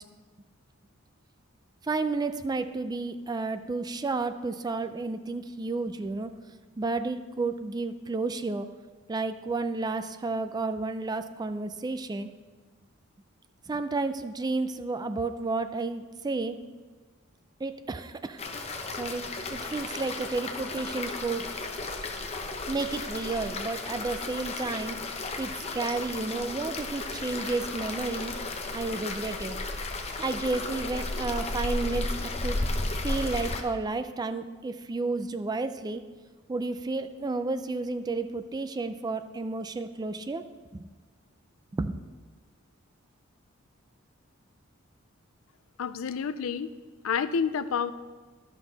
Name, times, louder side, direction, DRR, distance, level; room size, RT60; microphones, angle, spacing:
voice 1, 1.8-6.3 6.8-8.7 9.1-12.3 13.7-16.6 17.6-18.4 19.0-19.2 19.5-21.5 22.7-25.0 25.4-28.3 28.7-29.6 30.2-32.1 32.4-32.6 33.0-36.0 36.5-40.4 40.7-40.9 41.7-42.0, right 3 dB, 20° right, 10 dB, 0.3 m, -31 dB
sound 1, 18.4-33.6, left 2 dB, 30° left, 0.7 m, -34 dB
voice 2, 45.8-46.7 47.0-47.9, left 6 dB, 70° left, 13 dB, 0.4 m, -29 dB
11.5 x 6.1 x 4.0 m, 1.4 s
head